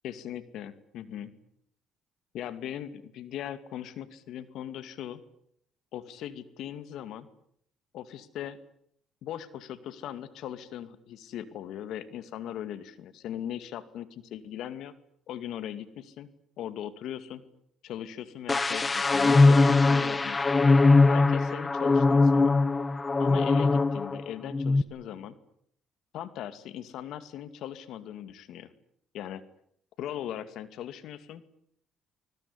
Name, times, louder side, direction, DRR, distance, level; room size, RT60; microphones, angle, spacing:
voice 1, 0.0-1.3 2.3-5.2 5.9-7.3 7.9-8.6 9.2-14.9 15.3-16.3 16.6-17.4 17.8-20.5 21.1-22.5 23.2-25.4 26.1-28.7 29.1-29.4 30.0-31.4, left 10 dB, 75° left, 13 dB, 2.4 m, -39 dB
sound 1, 18.5-24.2 24.5-24.8, left 3 dB, 25° left, 1.2 m, -21 dB
26.5 x 20.5 x 9.8 m, 0.68 s
cardioid pair, 95°, 0 cm